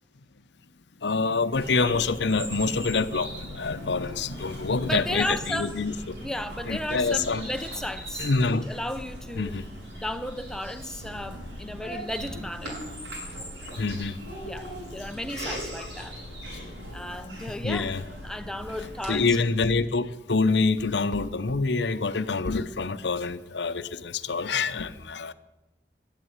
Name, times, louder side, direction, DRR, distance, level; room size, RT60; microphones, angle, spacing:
voice 1, 1.0-6.3 6.7-7.5 8.2-8.6 9.4-9.7 13.7-14.2 15.3-15.4 17.5-18.0 19.1-25.3, left 4 dB, 75° left, 0.8 m, -26 dB
Bird vocalization bird call bird song, 1.5-19.4, equal, 90° right, 7.3 m, -39 dB
voice 2, 4.8-5.8 6.2-9.6 10.0-12.8 14.4-16.2 16.9-17.9 18.2-19.4, left 1 dB, 5° left, 0.7 m, -34 dB
11.5 x 11.0 x 9.9 m
head